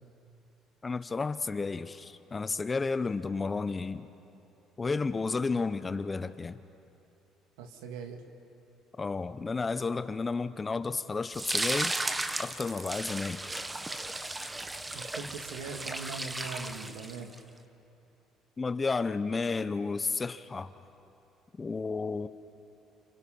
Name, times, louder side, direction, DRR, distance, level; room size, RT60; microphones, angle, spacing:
voice 1, 0.8-4.1 4.8-6.6 9.0-11.9 12.4-13.4 18.6-20.7 21.6-22.3, left 4 dB, 25° left, 12 dB, 0.9 m, -32 dB
voice 2, 7.6-8.2 14.9-17.3, right 4 dB, 85° right, 4 dB, 2.2 m, -41 dB
sound 1, 11.3-17.4, right 2 dB, 15° right, 1.2 m, -35 dB
29.5 x 27.5 x 5.6 m, 2.8 s
supercardioid pair, 80°, 0 cm